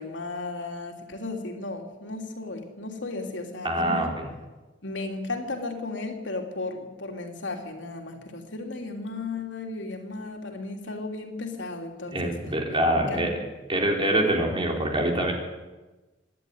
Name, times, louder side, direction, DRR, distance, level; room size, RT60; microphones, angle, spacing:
voice 1, 0.0-4.1 4.8-12.3 13.0-13.3, left 3 dB, 85° left, 3 dB, 3.2 m, -35 dB
voice 2, 3.6-4.3 12.1-13.3 13.7-15.3, right 1 dB, 30° right, 1 dB, 4.0 m, -25 dB
25.5 x 11.0 x 9.7 m, 1.2 s
head